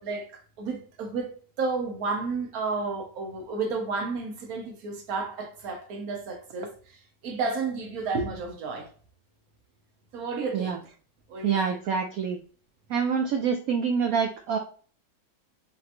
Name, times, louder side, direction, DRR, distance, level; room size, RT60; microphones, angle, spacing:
voice 1, 0.0-6.7 7.2-8.9 10.1-10.8 11.3-11.8, right 4 dB, 55° right, 1.3 m, -32 dB
voice 2, 11.4-12.4 12.9-14.6, right 6 dB, 80° right, 0.7 m, -26 dB
4.3 x 3.8 x 2.5 m
omnidirectional pair, 2.1 m